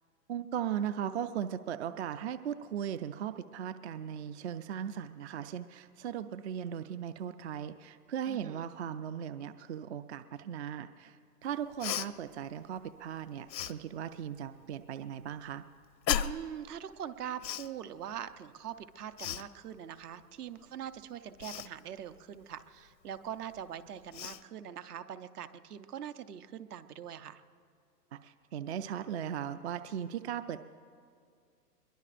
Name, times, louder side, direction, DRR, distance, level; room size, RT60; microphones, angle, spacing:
voice 1, 0.3-15.6 28.1-30.6, right 9 dB, 45° right, 12 dB, 0.4 m, -38 dB
voice 2, 8.3-8.6 16.2-27.4, right 9 dB, 65° right, 11 dB, 0.9 m, -43 dB
Cough, 11.8-12.1 13.5-13.7 16.1-16.5 17.4-17.7 19.2-19.4 21.4-21.7 23.5-23.6 24.1-24.4, left 10 dB, 85° left, 0.7 m, -34 dB
24.0 x 22.0 x 2.5 m, 2.3 s
hypercardioid pair, 130°, 49 cm